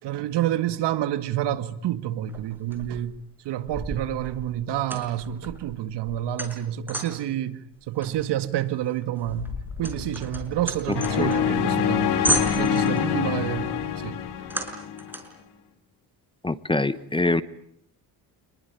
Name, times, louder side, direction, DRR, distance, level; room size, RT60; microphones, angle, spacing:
voice 1, 0.0-3.2 3.4-9.5 9.8-12.1 12.5-14.2, right 12 dB, 75° right, 2.1 m, -28 dB
sound 1, 2.3-3.2 3.7-7.3 8.0-11.6 11.9-12.0 12.2-13.1 14.5-15.4, right 1 dB, 5° right, 5.6 m, -32 dB
Wind, 9.2-14.7, left 5 dB, 45° left, 6.6 m, -42 dB
sound 2, 10.9-15.1, left 8 dB, 70° left, 3.3 m, -25 dB
voice 2, 16.4-17.4, left 2 dB, 10° left, 1.0 m, -24 dB
28.5 x 21.5 x 9.7 m
cardioid pair, 125°, 41 cm